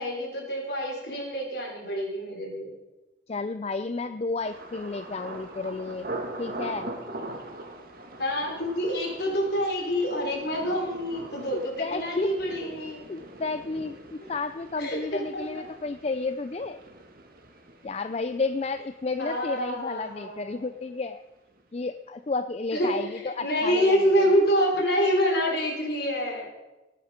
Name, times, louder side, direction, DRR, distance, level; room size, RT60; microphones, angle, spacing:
voice 1, 0.0-2.7 8.2-13.0 14.8-15.0 19.2-20.6 22.7-22.9 23.2-26.5, equal, 55° left, 0 dB, 4.3 m, -26 dB
voice 2, 3.3-6.1 6.4-6.9 11.5-12.3 12.6-12.8 13.1-16.8 17.8-21.2 21.7-24.1, left 3 dB, 35° left, 11 dB, 0.4 m, -32 dB
Thunder, 4.4-20.2 20.5-21.1 21.5-21.8, right 1 dB, 50° right, 1.8 m, -42 dB
18.0 x 9.5 x 5.2 m, 1.1 s
head